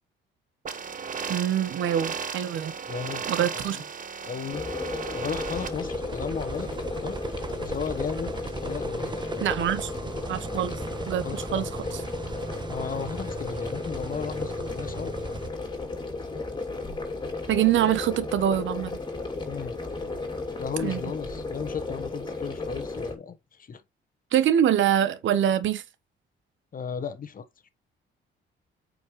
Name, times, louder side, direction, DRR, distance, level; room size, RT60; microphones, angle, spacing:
sound 1, 0.6-5.7, right 6 dB, 40° right, 1.2 m, -35 dB
voice 1, 1.3-2.7 3.3-3.8 9.4-9.9 10.3-10.7 11.1-12.0 17.5-19.0 20.8-21.0 24.3-25.8, right 10 dB, 75° right, 1.0 m, -24 dB
voice 2, 2.9-3.2 3.5-3.8 4.2-4.6 5.1-6.7 7.0-7.2 7.6-8.3 8.6-9.4 9.8-9.9 11.2-11.7 12.7-15.1 19.4-19.8 20.6-23.8 26.7-27.4, left 6 dB, 45° left, 1.2 m, -35 dB
sound 2, 4.5-23.2, left 3 dB, 20° left, 2.7 m, -34 dB
sound 3, 5.3-15.5, right 3 dB, 20° right, 1.2 m, -38 dB
8.6 x 5.2 x 3.1 m
cardioid pair, 90°, 20 cm